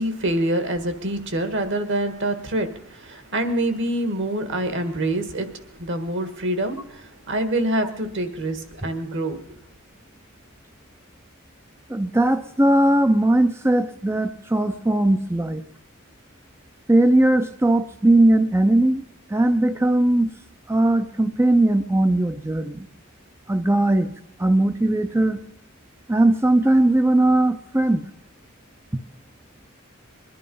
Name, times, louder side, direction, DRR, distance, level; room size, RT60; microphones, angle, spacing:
voice 1, 0.0-5.5 5.8-9.4, right 1 dB, 60° right, 10 dB, 1.6 m, -26 dB
voice 2, 11.9-15.6 16.9-19.0 19.3-20.3 20.7-22.9 23.5-24.1 24.4-25.4 26.1-28.1, right 1 dB, 10° right, 9 dB, 0.5 m, -19 dB
21.5 x 11.0 x 5.4 m, 0.85 s
head